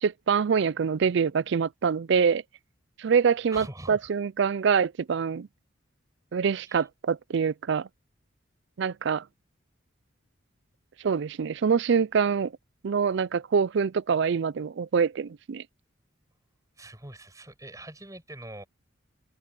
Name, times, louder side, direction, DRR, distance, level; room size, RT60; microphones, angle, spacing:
voice 1, 0.0-2.4 3.0-5.5 6.3-7.9 8.8-9.2 11.0-12.5 12.8-15.6, right 6 dB, 60° right, 0.4 m, -25 dB
voice 2, 3.5-4.1 6.7-6.9 16.8-18.6, right 1 dB, 15° right, 6.0 m, -43 dB
head